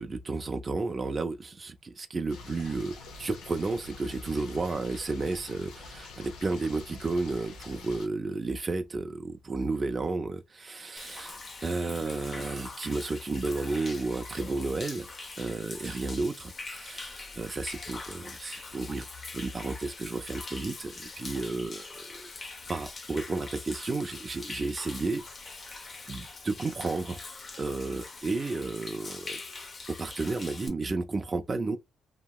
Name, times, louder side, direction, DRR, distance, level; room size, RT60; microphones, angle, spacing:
voice 1, 0.0-15.1 15.4-19.1 19.3-22.3 22.7-25.2 26.1-27.2 27.6-29.4 29.9-31.8, right 3 dB, 30° right, 0.4 m, -32 dB
sound 1, 2.3-8.1, left 3 dB, 90° left, 0.7 m, -46 dB
Human voice / Rain / Stream, 11.0-30.7, left 3 dB, 45° left, 0.8 m, -43 dB
2.8 x 2.7 x 2.3 m
cardioid pair, 90°, 0 cm